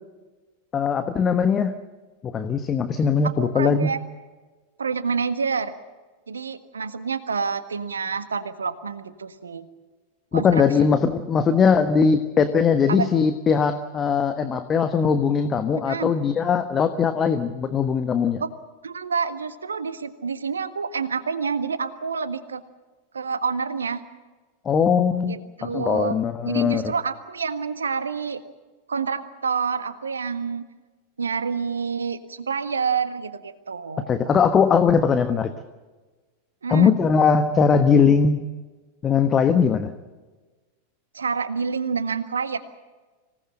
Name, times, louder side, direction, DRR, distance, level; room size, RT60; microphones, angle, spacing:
voice 1, 0.7-1.7 2.2-3.9 10.3-18.4 24.6-26.9 34.1-35.5 36.7-38.4 39.0-39.9, left 6 dB, 25° left, 9 dB, 1.3 m, -20 dB
voice 2, 3.2-4.0 4.8-5.7 6.3-9.6 10.3-10.6 10.9-11.0 12.9-13.2 15.9-16.1 18.4-18.5 18.8-22.6 23.1-24.0 25.2-26.2 26.4-28.4 28.9-30.7 31.2-34.3 36.6-37.0 41.1-42.6, right 5 dB, 70° right, 11 dB, 1.6 m, -28 dB
26.0 x 18.0 x 7.8 m, 1.3 s
figure-of-eight pair, 90°, 0 cm